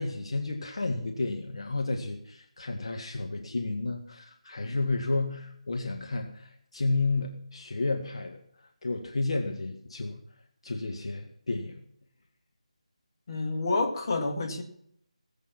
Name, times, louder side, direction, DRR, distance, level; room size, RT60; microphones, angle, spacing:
voice 1, 0.0-8.4 8.8-10.2 10.6-11.8, left 3 dB, 55° left, 3 dB, 1.9 m, -31 dB
voice 2, 13.3-14.6, left 3 dB, 40° left, 2 dB, 2.1 m, -28 dB
19.0 x 8.3 x 5.9 m, 0.69 s
figure-of-eight pair, 160°, 4 cm